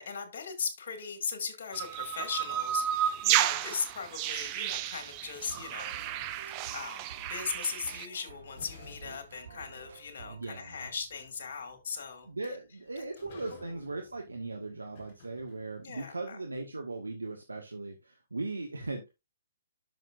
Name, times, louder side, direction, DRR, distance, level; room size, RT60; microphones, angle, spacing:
voice 1, 0.0-6.0 6.3-12.3 13.0-13.1 13.5-13.6 15.8-16.4, left 6 dB, 50° left, 2.3 m, -38 dB
sound 1, 1.7-8.1, right 11 dB, 25° right, 0.6 m, -32 dB
sound 2, 4.4-6.8 8.0-8.1 8.6-16.0, left 2 dB, 30° left, 4.9 m, -56 dB
sound 3, 5.3-10.5, right 5 dB, 60° right, 2.7 m, -51 dB
voice 2, 10.3-10.9 12.2-19.1, right 3 dB, 75° right, 1.3 m, -38 dB
10.5 x 6.5 x 2.5 m
figure-of-eight pair, 125°, 0 cm